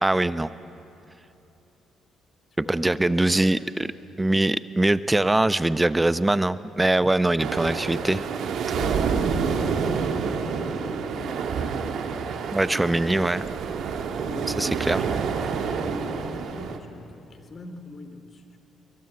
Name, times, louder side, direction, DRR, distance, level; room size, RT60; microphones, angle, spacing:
voice 1, 0.0-0.5 2.6-3.9 4.2-8.3 12.5-13.4 14.6-15.0, right 2 dB, 15° right, 15 dB, 0.9 m, -22 dB
voice 2, 2.6-3.5 8.8-11.9 14.3-15.2 15.5-18.6, left 2 dB, 40° left, 8 dB, 2.8 m, -39 dB
sound 1, 7.4-16.8, right 6 dB, 60° right, 1.8 m, -28 dB
26.5 x 23.0 x 9.0 m, 3.0 s
figure-of-eight pair, 45°, 0 cm